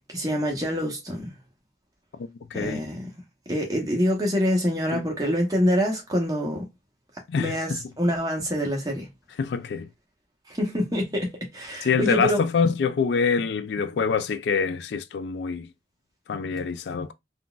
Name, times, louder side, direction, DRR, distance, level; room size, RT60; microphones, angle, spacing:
voice 1, 0.1-1.4 2.5-3.1 3.5-6.7 7.4-9.1 10.5-12.4, equal, 20° right, 0.9 m, -26 dB
voice 2, 2.2-2.8 4.9-5.0 7.3-7.8 9.4-9.9 11.8-15.7 16.3-17.1, left 5 dB, 75° left, 0.3 m, -25 dB
3.7 x 2.4 x 2.2 m
head